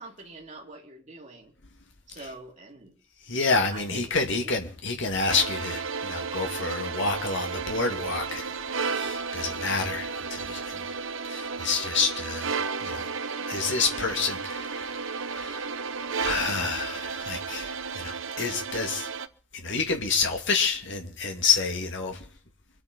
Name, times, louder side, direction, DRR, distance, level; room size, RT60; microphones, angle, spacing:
voice 1, 0.0-1.5 2.1-3.0 3.7-4.0 4.4-4.6, right 2 dB, 35° right, 3.1 m, -44 dB
voice 2, 3.3-8.5 8.8-10.8 11.3-12.5 12.8-13.1 13.5-15.7 16.2-19.1 19.5-22.2, left 4 dB, 55° left, 2.6 m, -28 dB
sound 1, 5.3-19.3, right 5 dB, 60° right, 0.8 m, -33 dB
24.5 x 8.7 x 5.4 m
head